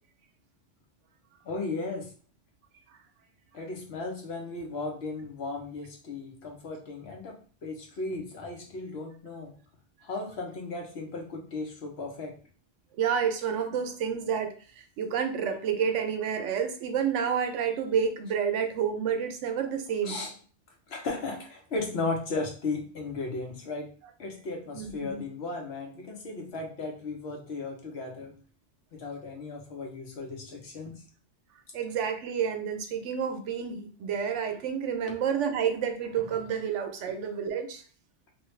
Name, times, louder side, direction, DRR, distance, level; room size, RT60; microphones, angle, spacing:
voice 1, 1.5-2.1 3.5-9.5 10.0-12.3 20.0-20.3 20.9-23.9 24.2-28.3 28.9-31.0, left 3 dB, 65° left, 1 dB, 1.0 m, -35 dB
voice 2, 13.0-20.2 24.7-25.2 31.7-37.8, right 7 dB, 80° right, 6 dB, 0.9 m, -29 dB
3.0 x 2.3 x 3.1 m, 0.40 s
omnidirectional pair, 1.2 m